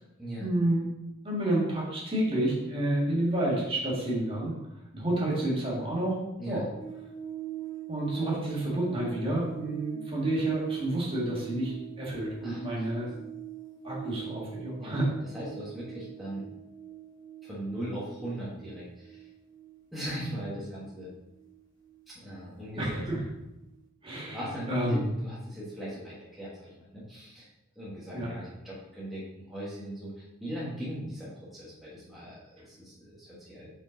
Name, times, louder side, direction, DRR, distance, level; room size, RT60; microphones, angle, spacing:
voice 1, 0.4-0.8 1.2-4.6 4.9-6.2 6.5-6.7 7.9-13.1 13.8-15.1 22.8-23.2 24.0-24.4 24.7-25.0 28.1-28.4, right 1 dB, 30° right, -5 dB, 1.9 m, -29 dB
sound 1, 6.8-23.3 23.6-23.8, right 11 dB, 20° left, 1.6 m, -43 dB
voice 2, 12.4-13.0 14.8-15.0 15.3-16.5 17.4-19.3 19.9-21.1 22.1-23.0 24.3-27.5 27.7-33.7, equal, ahead, -9 dB, 1.4 m, -39 dB
5.2 x 5.2 x 3.9 m, 0.93 s
head